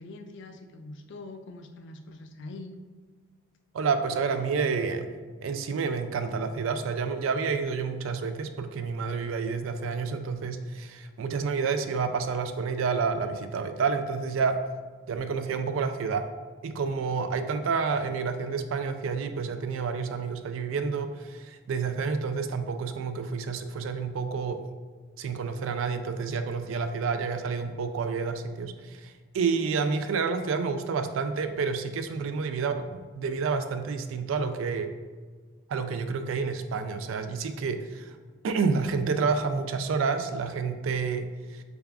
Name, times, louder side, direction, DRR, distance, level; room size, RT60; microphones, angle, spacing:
voice 1, 0.0-2.7, left 2 dB, 60° left, 7 dB, 0.3 m, -43 dB
voice 2, 3.7-5.1 5.4-14.6 15.1-16.3 16.6-24.6 25.2-34.9 35.7-38.2 38.4-41.6, right 5 dB, 75° right, 8 dB, 0.3 m, -29 dB
6.7 x 2.3 x 2.4 m, 1.5 s
head